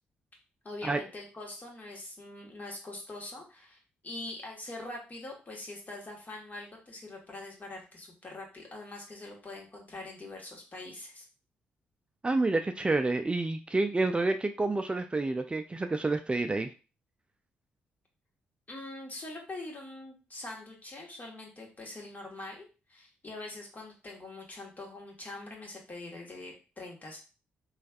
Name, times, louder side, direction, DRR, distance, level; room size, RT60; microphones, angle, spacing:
voice 1, 0.6-11.3 18.7-27.2, left 2 dB, 35° left, 0 dB, 1.5 m, -43 dB
voice 2, 12.2-16.7, right 2 dB, 20° right, 7 dB, 0.4 m, -29 dB
3.2 x 3.1 x 2.4 m, 0.33 s
hypercardioid pair, 45°, 5 cm